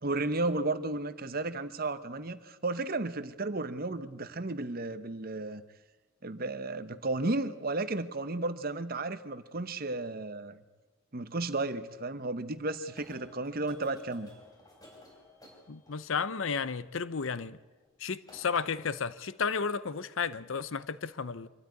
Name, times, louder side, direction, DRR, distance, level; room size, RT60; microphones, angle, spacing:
voice 1, 0.0-5.6 6.2-10.6 11.1-14.3, right 2 dB, 45° right, 1.0 m, -33 dB
sound 1, 12.8-16.3 17.8-18.0 18.2-19.0, left 1 dB, 15° left, 4.5 m, -55 dB
voice 2, 15.7-17.6 18.0-21.5, left 5 dB, 65° left, 0.6 m, -33 dB
24.5 x 13.5 x 9.6 m
head